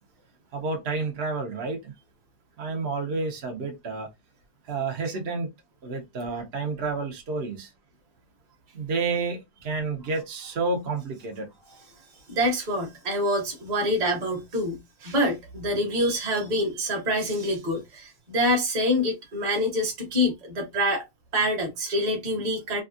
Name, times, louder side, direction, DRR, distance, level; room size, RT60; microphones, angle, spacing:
voice 1, 0.5-1.9 2.6-4.1 4.7-5.5 5.8-7.7 8.7-11.5, right 3 dB, 75° right, 0.5 m, -30 dB
voice 2, 12.3-21.0 21.3-22.8, equal, 30° right, 1.0 m, -26 dB
3.4 x 2.4 x 2.4 m
omnidirectional pair, 2.2 m